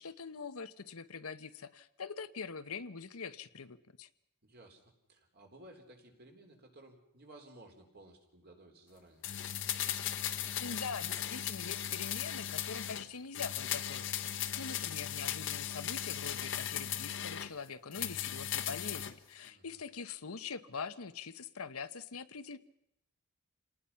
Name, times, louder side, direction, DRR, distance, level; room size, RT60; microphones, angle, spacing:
voice 1, 0.0-4.1 10.6-22.6, left 5 dB, 90° left, 12 dB, 1.0 m, -43 dB
voice 2, 4.4-9.2 19.5-19.8, right 1 dB, 50° right, 3 dB, 3.8 m, -57 dB
sound 1, 9.2-13.1 13.3-17.5 17.9-19.1 19.4-19.5, left 10 dB, 65° left, 1.1 m, -37 dB
27.5 x 19.0 x 5.7 m, 0.80 s
head